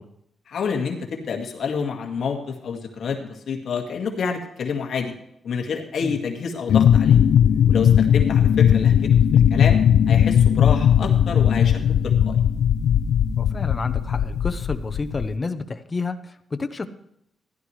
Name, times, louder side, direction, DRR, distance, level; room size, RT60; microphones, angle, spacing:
voice 1, 0.5-5.1 5.4-7.3 7.7-9.8 10.1-12.4, left 5 dB, 55° left, 2 dB, 1.9 m, -28 dB
sound 1, 6.7-15.3, left 9 dB, 80° left, 0.3 m, -18 dB
voice 2, 13.4-16.8, left 3 dB, 20° left, 8 dB, 0.8 m, -29 dB
16.0 x 11.0 x 3.2 m, 0.78 s
wide cardioid pair, 165°, 0 cm